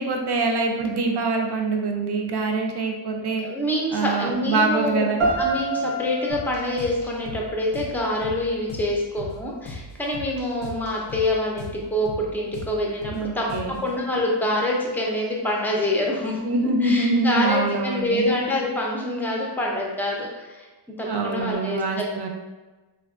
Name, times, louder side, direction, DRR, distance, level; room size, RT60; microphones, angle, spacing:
voice 1, 0.0-3.4 3.9-5.2 13.1-13.8 16.4-18.3 21.1-22.3, right 3 dB, 55° right, 2 dB, 0.5 m, -24 dB
voice 2, 3.4-5.1 5.4-13.5 13.8-16.4 16.8-20.7 21.0-22.0, left 1 dB, 5° left, -2 dB, 0.5 m, -26 dB
sound 1, 5.2-8.2, right 2 dB, 85° right, 0.7 m, -28 dB
sound 2, 6.3-13.9, left 2 dB, 60° left, 0.5 m, -39 dB
3.4 x 2.2 x 2.4 m, 1.2 s
wide cardioid pair, 60°, 49 cm